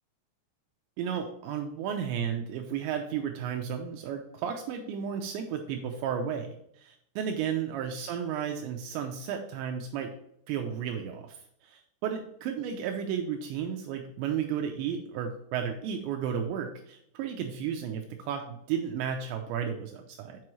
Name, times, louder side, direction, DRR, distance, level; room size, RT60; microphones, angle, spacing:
voice 1, 1.0-10.2 10.5-20.4, right 8 dB, 85° right, 4 dB, 2.5 m, -33 dB
7.6 x 6.0 x 3.1 m, 0.72 s
omnidirectional pair, 5.8 m